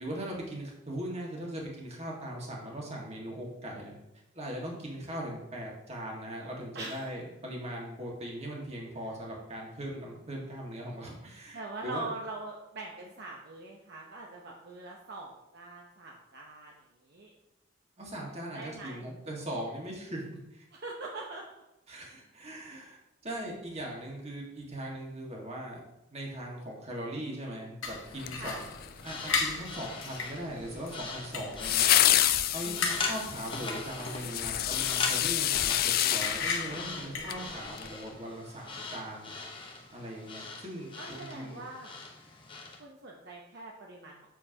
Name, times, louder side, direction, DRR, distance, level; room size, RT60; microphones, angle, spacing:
voice 1, 0.0-3.9 4.3-12.1 18.0-20.7 21.9-25.8 26.1-28.7 29.0-31.9 32.5-39.3 39.9-41.6, right 1 dB, 35° right, -2 dB, 1.7 m, -40 dB
voice 2, 6.7-7.1 11.5-16.8 17.1-17.3 18.5-19.1 20.7-21.4 28.4-28.6 32.6-33.1 41.0-42.0 42.8-44.2, right 2 dB, 60° right, -1 dB, 0.9 m, -42 dB
sound 1, 27.8-37.9, left 4 dB, 75° left, 1.2 m, -38 dB
sound 2, 28.2-29.1 31.6-37.4 37.8-37.9, left 13 dB, 50° left, 0.3 m, -28 dB
sound 3, 28.9-42.8, left 4 dB, 25° left, 0.9 m, -41 dB
7.4 x 6.8 x 2.9 m, 0.91 s
head